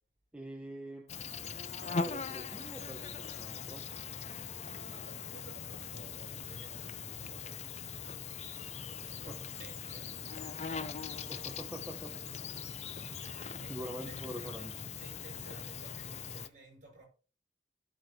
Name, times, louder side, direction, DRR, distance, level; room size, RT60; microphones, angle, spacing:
voice 1, 0.3-1.1 1.9-3.9 9.3-9.4 11.3-12.1 13.7-14.7, equal, 5° right, 1.0 m, -44 dB
Insect, 1.1-16.5, left 5 dB, 35° left, 0.5 m, -41 dB
voice 2, 4.5-8.0 9.1-11.5 13.2-14.7 15.0-17.1, right 1 dB, 40° right, 5.9 m, -55 dB
15.0 x 5.5 x 2.9 m
head